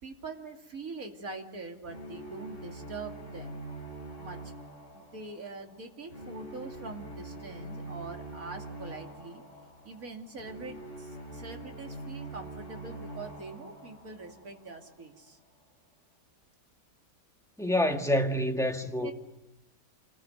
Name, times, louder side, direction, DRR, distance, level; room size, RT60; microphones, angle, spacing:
voice 1, 0.0-3.6 4.2-4.5 4.9-9.4 9.8-15.4 19.0-19.1, right 3 dB, 50° right, 2.9 m, -43 dB
sound 1, 1.8-14.9, right 2 dB, 40° left, 4.6 m, -44 dB
voice 2, 17.6-19.1, left 1 dB, ahead, 1.6 m, -27 dB
26.5 x 20.5 x 7.9 m
omnidirectional pair, 1.9 m